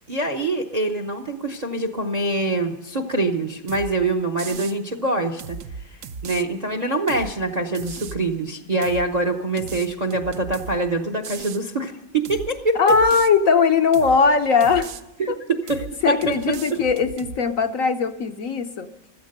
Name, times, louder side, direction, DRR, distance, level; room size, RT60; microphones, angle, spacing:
voice 1, 0.1-5.6 5.8-13.0 15.2-16.3 16.7-16.8, right 2 dB, 35° right, 6 dB, 0.7 m, -25 dB
sound 1, 3.7-3.9 4.4-4.8 5.4-6.4 7.1-7.3 7.7-8.2 8.8-9.1 9.6-10.8 11.2-11.6 12.2-12.5 12.9-13.3 13.9-14.2 14.6-15.0 15.7-15.9 16.2-17.4, right 6 dB, 60° right, 0.9 m, -36 dB
voice 2, 12.8-14.9 15.3-15.4 16.0-18.9, left 5 dB, 60° left, 7 dB, 1.0 m, -19 dB
15.5 x 13.0 x 6.6 m, 0.98 s
omnidirectional pair, 1.9 m